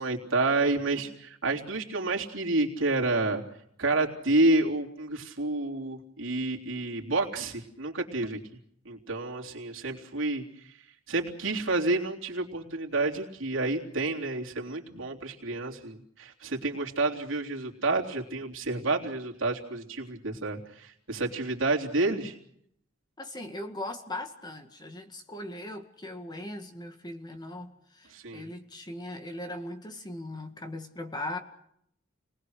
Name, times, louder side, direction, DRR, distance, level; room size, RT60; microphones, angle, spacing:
voice 1, 0.0-3.4 3.8-8.4 8.9-10.4 11.1-22.3 28.1-28.5, right 2 dB, 85° right, 0 dB, 3.5 m, -29 dB
voice 2, 23.2-31.4, left 1 dB, 20° left, 6 dB, 2.0 m, -39 dB
29.5 x 20.0 x 6.6 m, 0.71 s
head